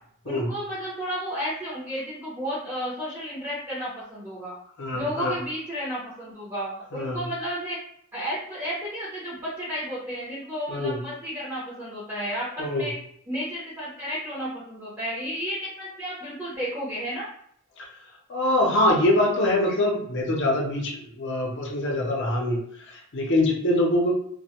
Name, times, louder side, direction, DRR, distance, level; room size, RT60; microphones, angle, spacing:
voice 1, 0.2-4.5 4.9-7.8 8.1-12.9 13.3-17.3, equal, 15° right, -8 dB, 0.6 m, -32 dB
voice 2, 4.8-5.4 6.9-7.2 10.7-11.0 12.6-12.9 17.8-17.9 18.3-22.6 22.9-24.1, left 1 dB, 55° left, -1 dB, 0.6 m, -24 dB
2.2 x 2.1 x 2.8 m, 0.67 s
head